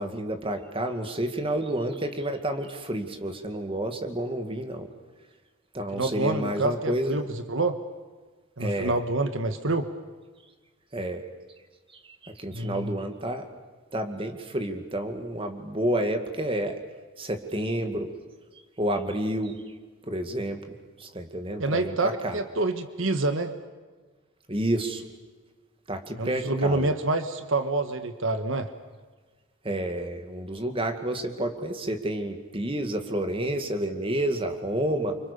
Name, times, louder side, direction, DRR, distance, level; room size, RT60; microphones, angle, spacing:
voice 1, 0.0-4.9 5.7-7.2 8.6-9.0 10.9-11.3 12.2-13.5 13.9-16.8 17.2-18.1 18.8-19.6 20.0-20.6 21.0-22.4 24.5-25.0 25.9-26.9 29.6-35.2, right 1 dB, 25° right, 6 dB, 2.2 m, -30 dB
voice 2, 5.9-7.8 8.6-9.9 12.5-12.9 21.6-23.5 26.2-28.7, right 2 dB, 65° right, 9 dB, 1.4 m, -27 dB
29.5 x 25.5 x 6.9 m, 1.4 s
head